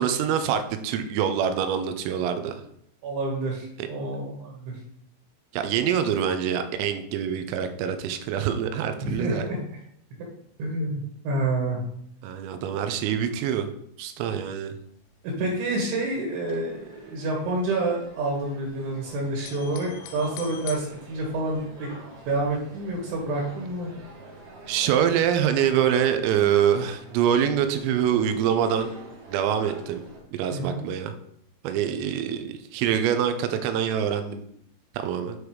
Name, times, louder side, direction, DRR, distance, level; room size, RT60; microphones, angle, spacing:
voice 1, 0.0-2.5 3.8-3.9 5.5-9.4 12.2-13.7 14.0-14.7 24.7-28.9 29.3-30.0 30.3-31.1 31.6-34.4 34.9-35.4, right 9 dB, 85° right, 8 dB, 3.4 m, -25 dB
voice 2, 3.0-4.8 9.0-9.6 10.6-11.8 15.2-21.9 22.3-23.9 30.5-30.9, right 2 dB, 70° right, -2 dB, 3.8 m, -28 dB
sound 1, 14.7-14.8 15.1-15.2 15.3-17.0 17.3-19.0 19.3-20.8, left 9 dB, 85° left, 3.4 m, -44 dB
sound 2, 16.2-30.2, right 2 dB, 50° right, 1.9 m, -46 dB
8.8 x 4.9 x 4.8 m, 0.69 s
omnidirectional pair, 5.9 m